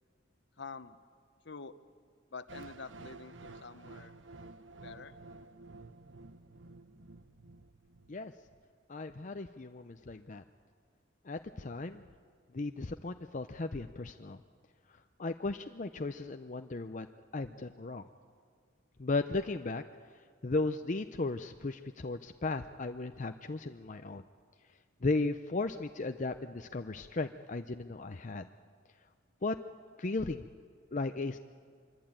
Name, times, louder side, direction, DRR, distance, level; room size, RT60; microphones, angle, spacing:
voice 1, 0.6-1.0 1.4-1.7 2.3-4.1 4.8-5.2, left 4 dB, 60° left, 12 dB, 1.0 m, -47 dB
sound 1, 2.5-8.5, right 3 dB, 75° right, 1.1 m, -51 dB
voice 2, 8.9-10.4 11.3-12.0 12.5-14.4 15.2-17.1 17.3-18.1 19.0-19.8 20.4-24.2 25.0-28.5 29.4-29.5 30.0-30.5 30.9-31.4, left 3 dB, 40° left, 7 dB, 0.6 m, -35 dB
25.0 x 23.0 x 9.0 m, 2.1 s
head